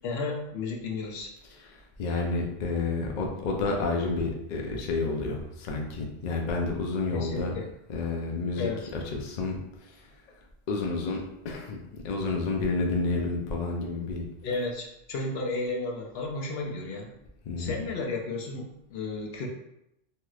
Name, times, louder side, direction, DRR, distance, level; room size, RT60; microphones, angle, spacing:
voice 1, 0.0-1.3 7.1-7.7 8.5-8.9 14.4-17.1 17.6-19.5, left 3 dB, 75° left, 1 dB, 0.8 m, -33 dB
voice 2, 2.0-7.5 7.9-9.6 10.7-14.3 17.5-17.8, left 3 dB, 55° left, 1 dB, 0.5 m, -30 dB
3.1 x 3.0 x 2.3 m, 0.82 s
omnidirectional pair, 1.1 m